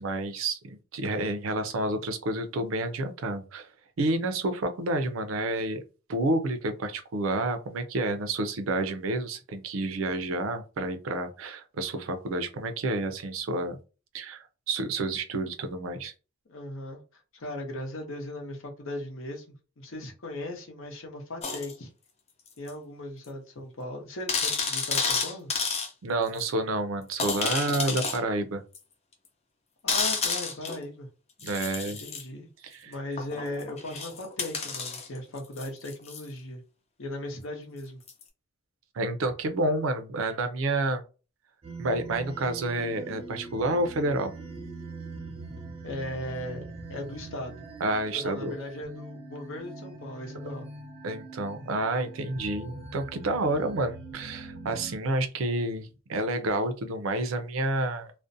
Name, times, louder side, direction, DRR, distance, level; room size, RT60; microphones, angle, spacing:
voice 1, 0.0-3.7 4.0-5.8 6.1-13.8 14.1-16.1 26.0-28.6 31.4-32.0 32.7-32.9 38.9-41.0 41.8-44.3 47.8-48.5 51.0-58.1, right 2 dB, 85° right, 0.5 m, -29 dB
voice 2, 16.5-21.9 22.6-25.5 29.8-31.1 31.9-32.5 32.8-36.6 37.0-38.0 45.8-47.6 48.1-50.7, left 1 dB, 80° left, 0.7 m, -38 dB
sound 1, 21.4-21.7 22.7-22.8 23.2-23.3 23.6-23.7 24.3-25.9 26.4-26.5 27.2-28.2 28.7-28.8 29.9-30.8 31.4-32.2 33.2-36.2 38.1-38.2, left 5 dB, 30° left, 0.5 m, -30 dB
sound 2, 41.6-55.0, right 3 dB, 30° right, 0.5 m, -43 dB
2.5 x 2.1 x 2.6 m
head